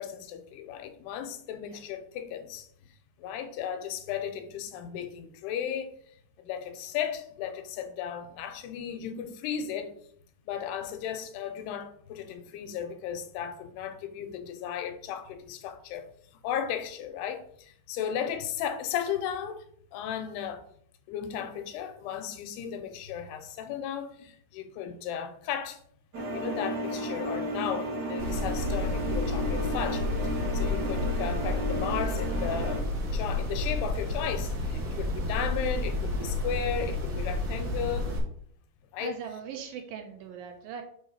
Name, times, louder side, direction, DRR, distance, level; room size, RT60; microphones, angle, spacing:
voice 1, 0.0-2.7 3.2-5.9 6.4-9.9 10.5-16.1 16.4-19.6 19.9-20.6 21.1-25.8 26.3-32.9 33.1-38.1 38.9-39.1, left 9 dB, 80° left, 2.7 m, -35 dB
sound 1, 26.1-32.8, equal, 35° right, 1.9 m, -33 dB
sound 2, 28.2-38.2, left 2 dB, 55° right, 2.3 m, -31 dB
voice 2, 39.0-40.8, right 7 dB, 75° right, 2.2 m, -40 dB
6.5 x 3.6 x 5.5 m
omnidirectional pair, 4.7 m